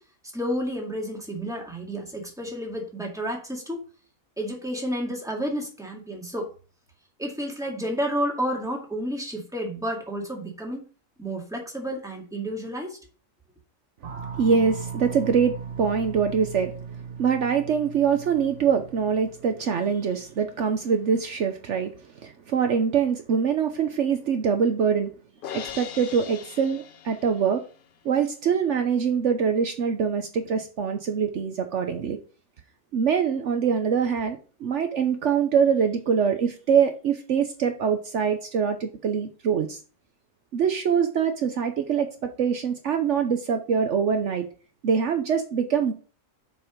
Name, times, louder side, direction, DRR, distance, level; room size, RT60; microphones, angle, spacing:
voice 1, 0.3-3.8 4.4-6.5 7.2-10.8 11.2-13.0, equal, ahead, 0 dB, 2.1 m, -31 dB
sound 1, 14.0-20.4, right 6 dB, 45° right, 1.4 m, -38 dB
voice 2, 14.4-16.7 17.2-21.9 22.1-25.1 25.5-27.6 28.0-32.2 32.9-39.8 40.5-44.4 44.8-45.9, right 6 dB, 65° right, 6 dB, 1.1 m, -24 dB
Crash cymbal, 25.4-27.7, left 9 dB, 60° left, 0.5 m, -40 dB
7.1 x 5.4 x 5.1 m, 0.37 s
omnidirectional pair, 1.4 m